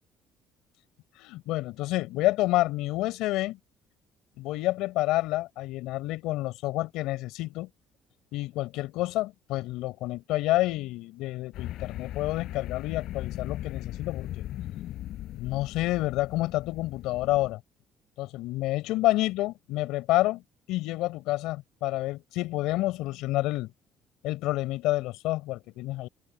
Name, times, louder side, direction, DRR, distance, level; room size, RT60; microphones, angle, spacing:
voice 1, 1.2-3.6 4.4-7.7 8.3-14.4 15.3-17.6 18.2-20.4 20.7-23.7 24.2-26.1, left 17 dB, 85° left, 4.7 m, -29 dB
sound 1, 11.5-17.5, left 13 dB, 60° left, 6.7 m, -38 dB
cardioid pair, 160°, 0 cm